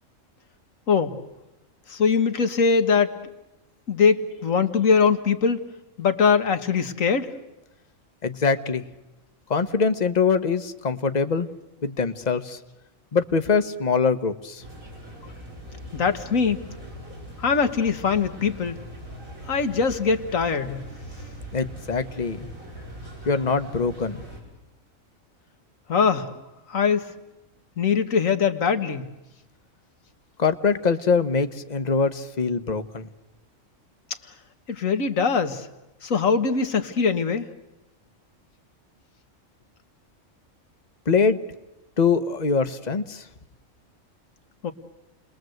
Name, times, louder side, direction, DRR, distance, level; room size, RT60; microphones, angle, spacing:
voice 1, 1.9-3.1 3.9-5.6 6.0-7.3 15.9-16.6 17.4-18.8 19.5-20.8 25.9-26.3 26.7-27.1 27.8-29.0 34.7-35.7 36.0-37.5 44.6-44.7, left 5 dB, 80° left, 8 dB, 1.9 m, -22 dB
voice 2, 8.2-8.8 9.5-11.5 11.8-12.6 13.1-14.6 21.5-22.5 23.3-24.2 30.4-33.1 41.1-41.4 42.0-43.2, left 5 dB, 35° left, 10 dB, 1.2 m, -23 dB
sound 1, 14.6-24.4, equal, 90° right, 6.3 m, -41 dB
30.0 x 21.5 x 7.9 m, 0.98 s
omnidirectional pair, 1.4 m